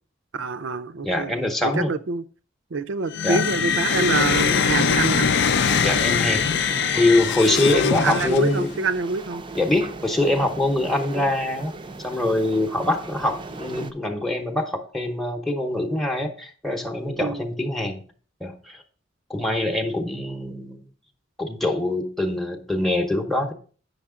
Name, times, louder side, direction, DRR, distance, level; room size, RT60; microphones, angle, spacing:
voice 1, 0.3-1.3 1.6-2.2 2.7-5.3 8.0-9.4 17.2-17.4, right 4 dB, 70° right, 0.5 m, -26 dB
voice 2, 1.0-1.9 3.2-3.4 5.8-8.7 9.6-11.7 12.0-18.0 18.4-18.8 19.3-20.8 21.4-23.5, left 1 dB, ahead, 0.8 m, -24 dB
sound 1, 3.1-8.8, left 6 dB, 60° left, 0.5 m, -22 dB
sound 2, 5.2-13.9, right 3 dB, 25° right, 0.5 m, -37 dB
8.6 x 6.4 x 3.7 m
head